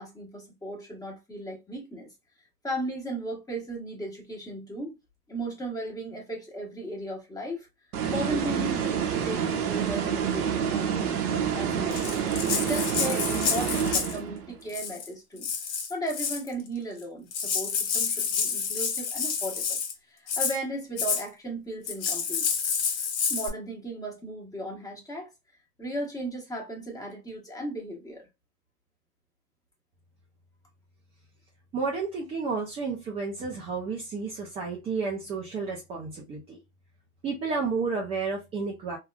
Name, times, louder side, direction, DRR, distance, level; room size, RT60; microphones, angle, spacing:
voice 1, 0.0-2.1 2.6-5.0 5.3-7.7 8.1-12.1 12.4-15.5 15.9-19.8 20.1-22.5 23.3-25.3 25.8-28.3, right 1 dB, 10° left, 1.1 m, -36 dB
sound 1, 7.9-14.5, right 8 dB, 80° right, 0.9 m, -28 dB
Rattle (instrument), 11.9-14.2 14.7-15.1 15.4-16.5 17.0-17.1 17.3-19.9 20.3-20.6 21.0-21.2 21.9-23.5, left 6 dB, 70° left, 1.2 m, -29 dB
voice 2, 31.7-36.6 37.2-39.0, right 4 dB, 15° right, 0.3 m, -31 dB
3.4 x 2.2 x 2.2 m
hypercardioid pair, 110°, 45 cm